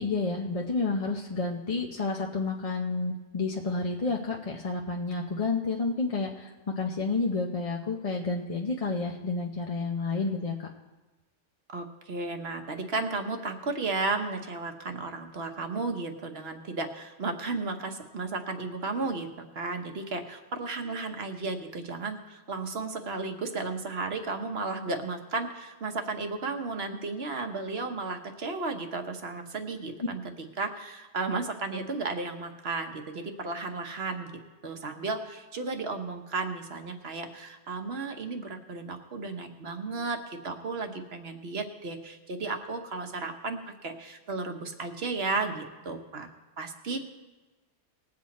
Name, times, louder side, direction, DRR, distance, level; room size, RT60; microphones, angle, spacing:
voice 1, 0.0-10.7, left 3 dB, 35° left, 0 dB, 0.7 m, -30 dB
voice 2, 11.7-34.3 34.6-46.3 46.6-47.0, right 3 dB, 55° right, 5 dB, 1.2 m, -34 dB
20.0 x 7.8 x 4.2 m, 1.2 s
omnidirectional pair, 1.4 m